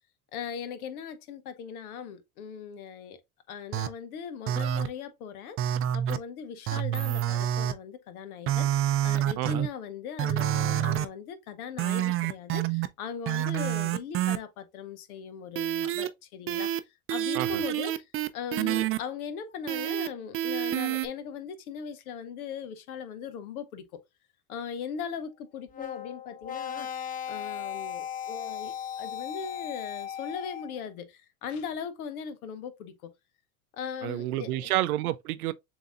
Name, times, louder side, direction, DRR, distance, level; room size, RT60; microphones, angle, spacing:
voice 1, 0.3-3.2 3.5-23.9 24.5-33.1 33.7-34.7, left 7 dB, 80° left, 1.0 m, -39 dB
sound 1, 3.7-3.9 4.5-4.9 5.6-6.2 6.7-7.7 8.5-9.7 10.2-11.1 11.8-12.9 13.3-14.4 15.6-16.1 16.5-16.8 17.1-19.0 19.7-20.1 20.3-21.1, right 11 dB, 30° right, 0.5 m, -27 dB
voice 2, 9.4-9.7 17.3-17.6 34.0-35.5, right 15 dB, 85° right, 0.6 m, -29 dB
sound 2, 25.7-30.8, left 9 dB, 20° left, 0.7 m, -37 dB
6.9 x 2.8 x 2.4 m
hypercardioid pair, 90°, 43 cm